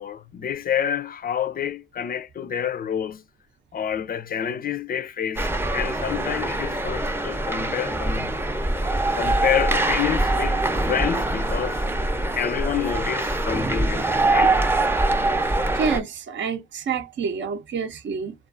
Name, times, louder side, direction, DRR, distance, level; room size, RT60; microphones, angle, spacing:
voice 1, 0.0-3.2 3.7-8.3 9.2-11.9 12.4-14.6, left 9 dB, 50° left, 0.4 m, -28 dB
sound 1, 5.4-16.0, right 2 dB, 10° right, 0.5 m, -23 dB
voice 2, 15.7-18.3, right 5 dB, 70° right, 0.7 m, -28 dB
2.3 x 2.3 x 2.4 m
cardioid pair, 70°, 20 cm